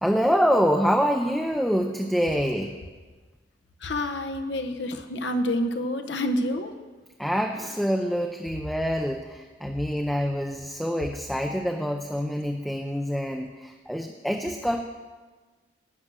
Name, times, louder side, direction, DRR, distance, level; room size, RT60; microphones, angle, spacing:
voice 1, 0.0-2.7 7.2-14.8, equal, ahead, 3 dB, 0.5 m, -26 dB
voice 2, 3.8-6.7, left 1 dB, 70° left, 7 dB, 0.9 m, -28 dB
12.0 x 7.7 x 6.1 m, 1.3 s
head